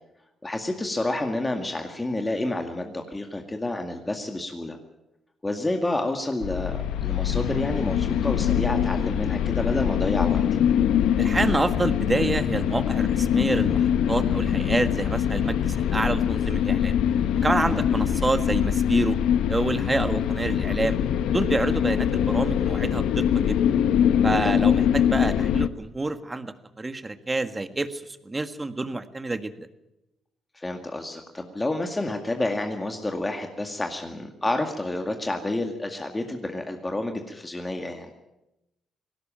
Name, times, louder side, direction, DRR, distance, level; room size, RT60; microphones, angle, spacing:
voice 1, 0.4-4.8 5.4-10.4 17.6-17.8 24.4-24.6 30.5-38.1, left 2 dB, 15° left, 4 dB, 2.1 m, -29 dB
sound 1, 6.4-25.7, left 9 dB, 85° left, 0.9 m, -23 dB
voice 2, 11.2-16.9 17.4-19.2 19.5-21.0 21.3-23.7 24.2-29.7, right 2 dB, 20° right, 10 dB, 1.7 m, -28 dB
20.0 x 17.5 x 8.9 m, 0.92 s
cardioid pair, 90°, 0 cm